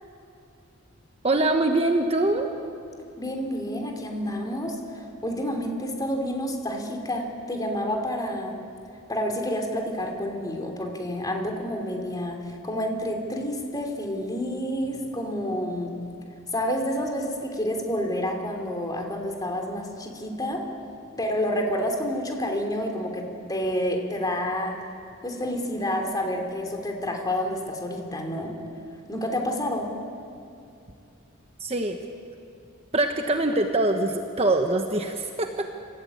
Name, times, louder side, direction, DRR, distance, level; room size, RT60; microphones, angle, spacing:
voice 1, 1.2-2.5 31.6-32.0 32.9-35.8, right 2 dB, 30° right, 4 dB, 1.1 m, -23 dB
voice 2, 3.2-8.6 9.1-16.0 16.5-20.6 21.2-24.7 25.2-28.5 29.1-29.9, equal, 20° left, 2 dB, 3.1 m, -29 dB
28.0 x 15.5 x 8.6 m, 2.6 s
head